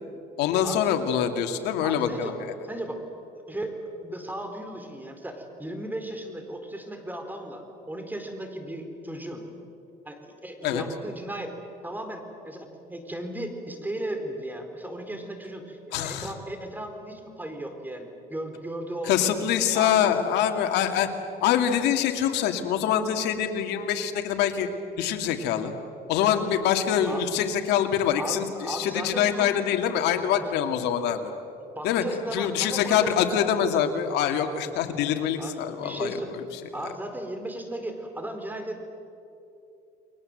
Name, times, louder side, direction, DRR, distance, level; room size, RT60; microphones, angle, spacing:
voice 1, 0.4-2.3 10.6-10.8 15.9-16.3 19.0-21.1 21.4-24.7 25.0-25.7 26.1-31.3 31.8-32.0 32.3-36.4, left 9 dB, 90° left, 5 dB, 2.3 m, -25 dB
voice 2, 1.8-2.4 2.6-3.1 3.5-9.5 10.1-19.4 19.7-20.4 27.1-27.3 28.1-29.6 30.2-30.5 31.7-33.3 35.4-36.3 36.7-38.8, right 1 dB, 10° right, 5 dB, 4.1 m, -36 dB
30.0 x 22.0 x 7.9 m, 2.7 s
cardioid pair, 110°, 17 cm